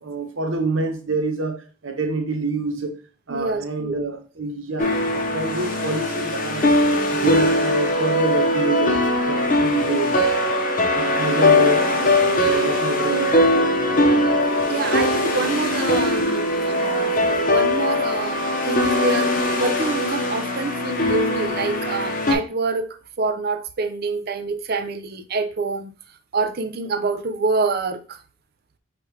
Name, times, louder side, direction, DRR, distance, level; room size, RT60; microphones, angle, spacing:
voice 1, 0.0-2.9 3.3-6.8 7.1-10.6 10.9-14.0, right 3 dB, 65° right, 0.9 m, -27 dB
voice 2, 3.3-4.0 14.3-14.4 14.7-25.9 26.3-28.2, right 3 dB, 45° right, 0.5 m, -26 dB
sound 1, 4.8-22.3, left 1 dB, 40° left, 0.8 m, -20 dB
4.9 x 3.2 x 3.2 m
head